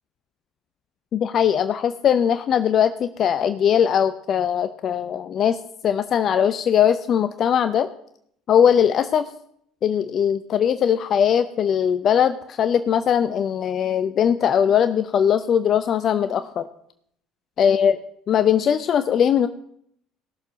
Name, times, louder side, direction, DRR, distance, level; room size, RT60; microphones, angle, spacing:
voice 1, 1.1-5.6 5.8-7.9 8.5-9.3 9.8-16.7 17.6-18.0 18.3-19.5, left 8 dB, 50° left, 11 dB, 0.6 m, -20 dB
17.5 x 6.7 x 6.2 m, 0.69 s
hypercardioid pair, 60°, 0 cm